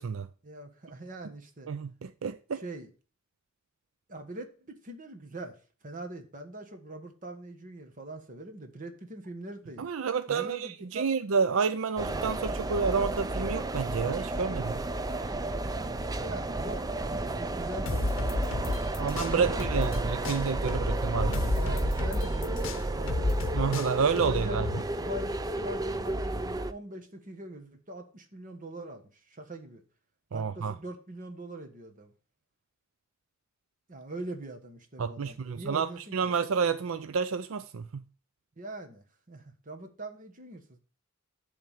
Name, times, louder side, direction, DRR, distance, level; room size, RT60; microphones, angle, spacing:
voice 1, 0.4-1.7 2.5-2.9 4.1-5.6 5.8-9.9 10.3-11.1 16.2-19.8 20.9-23.5 23.9-24.7 25.0-29.8 30.3-32.1 33.9-36.3 38.6-40.8, right 1 dB, 40° right, 1.4 m, -42 dB
voice 2, 1.7-2.6 9.8-14.8 19.0-21.5 23.5-24.7 30.3-30.7 35.0-38.0, right 5 dB, 85° right, 0.5 m, -29 dB
sound 1, 12.0-26.7, right 2 dB, 20° right, 0.4 m, -32 dB
sound 2, 17.9-20.0 20.2-24.8, left 2 dB, 70° left, 0.7 m, -31 dB
10.5 x 3.6 x 7.2 m
head